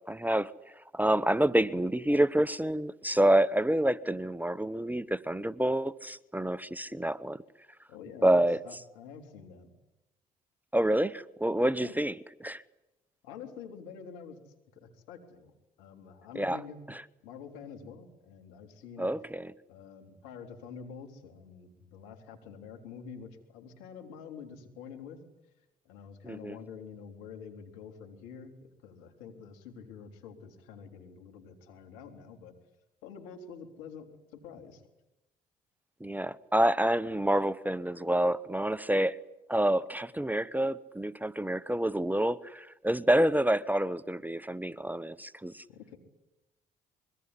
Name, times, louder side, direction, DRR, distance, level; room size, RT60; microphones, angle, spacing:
voice 1, 0.1-0.5 0.9-7.4 8.2-8.6 10.7-12.1 12.4-12.6 16.4-16.6 16.9-17.0 19.0-19.5 26.2-26.6 36.0-39.2 39.5-45.6, right 1 dB, 10° right, 0.9 m, -28 dB
voice 2, 7.9-9.7 11.7-12.0 13.2-14.4 14.7-15.5 15.8-16.8 17.2-19.1 19.7-25.2 25.9-32.6 33.0-34.8 45.7-46.0, left 6 dB, 80° left, 3.6 m, -47 dB
25.0 x 22.5 x 9.9 m
hypercardioid pair, 50°, 20 cm